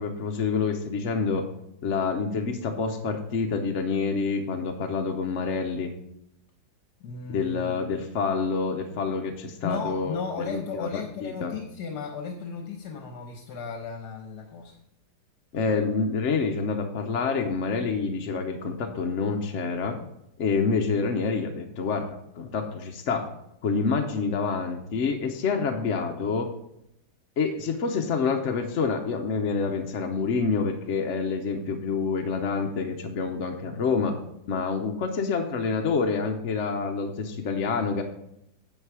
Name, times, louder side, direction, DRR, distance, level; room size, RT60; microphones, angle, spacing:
voice 1, 0.0-1.4 1.8-5.9 7.3-10.9 11.2-11.5 15.5-20.0 20.4-22.1 22.4-23.3 23.6-26.5 27.4-34.1 34.5-38.0, left 5 dB, 55° left, 4 dB, 0.9 m, -27 dB
voice 2, 7.0-7.8 9.6-14.8, left 5 dB, 70° left, 3 dB, 1.6 m, -35 dB
8.9 x 7.4 x 4.8 m, 0.80 s
omnidirectional pair, 1.8 m